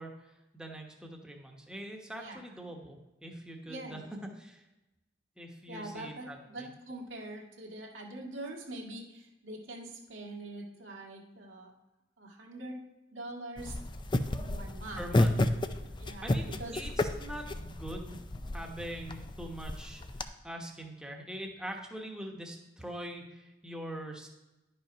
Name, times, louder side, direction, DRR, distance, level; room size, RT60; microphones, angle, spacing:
voice 1, 0.0-4.0 4.4-4.7 5.4-6.7 15.0-15.4 16.2-16.9 17.2-18.2 18.5-20.0 20.4-24.3, right 1 dB, 5° right, 1 dB, 1.1 m, -43 dB
voice 2, 3.7-4.2 5.7-11.7 12.2-12.8 13.1-13.7 14.3-15.2 16.0-16.8, right 1 dB, 75° right, -1 dB, 1.8 m, -44 dB
sound 1, 13.6-20.2, left 1 dB, 25° left, 0.4 m, -32 dB
10.5 x 5.5 x 5.2 m, 1.0 s
head